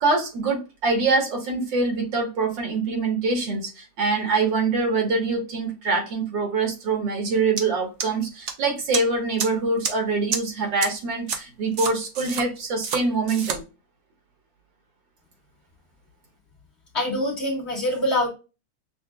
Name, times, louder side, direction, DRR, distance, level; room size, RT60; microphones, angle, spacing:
voice 1, 0.0-13.6, right 3 dB, 75° right, 2.0 m, -24 dB
sound 1, 7.6-7.7 8.0-8.5 8.9-9.0 9.4-9.5 9.8-9.9 10.3-10.4 10.8-10.9 11.3-11.4 11.8-12.4 12.8-13.0 13.3-13.6, right 6 dB, 55° right, 0.8 m, -27 dB
voice 2, 16.9-18.3, left 1 dB, 35° left, 1.7 m, -24 dB
6.4 x 2.6 x 2.3 m
omnidirectional pair, 2.0 m